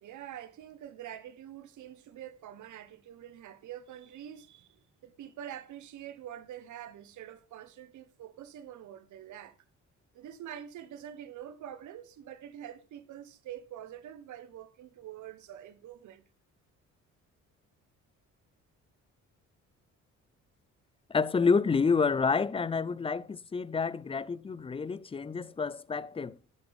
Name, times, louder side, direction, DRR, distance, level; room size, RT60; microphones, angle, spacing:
voice 1, 0.0-9.6 10.1-16.2, right 10 dB, 75° right, 1.1 m, -46 dB
voice 2, 21.1-26.4, left 5 dB, 20° left, 0.5 m, -28 dB
11.0 x 8.1 x 3.5 m
cardioid pair, 90°, 30 cm